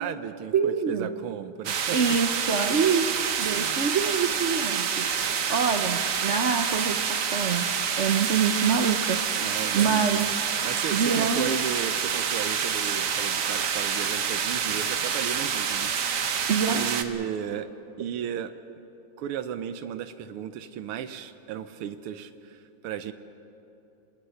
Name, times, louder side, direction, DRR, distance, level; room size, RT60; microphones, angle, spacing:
voice 1, 0.0-2.0 3.5-3.9 9.4-10.3 10.6-16.3 16.7-17.7 18.0-18.5 19.2-23.1, right 9 dB, 90° right, 11 dB, 1.7 m, -35 dB
voice 2, 0.5-1.1 1.9-5.1 5.5-7.7 8.0-9.2 9.7-10.3 10.9-11.6 16.5-16.9, right 6 dB, 70° right, 5 dB, 0.6 m, -25 dB
sound 1, 1.6-17.0, right 7 dB, 50° right, 1.0 m, -27 dB
27.0 x 19.5 x 5.7 m, 2.8 s
omnidirectional pair, 2.3 m